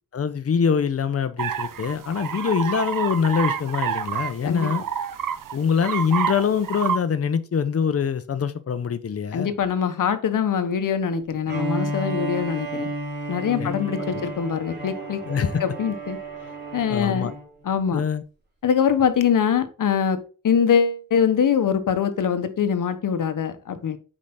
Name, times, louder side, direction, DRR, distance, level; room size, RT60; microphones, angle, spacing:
voice 1, 0.1-4.8 5.5-9.5 13.6-13.7 14.1-14.2 15.3-15.6 16.9-17.3 17.9-18.2, left 6 dB, 45° left, 0.8 m, -24 dB
sound 1, 1.4-7.0, right 8 dB, 80° right, 0.8 m, -28 dB
voice 2, 9.3-12.9 13.3-15.2 15.6-16.2 16.7-17.3 17.6-18.0 18.6-24.0, left 7 dB, 75° left, 1.2 m, -23 dB
Bowed string instrument, 11.5-17.5, right 2 dB, 30° right, 2.8 m, -32 dB
8.7 x 5.0 x 3.8 m
wide cardioid pair, 160°, 32 cm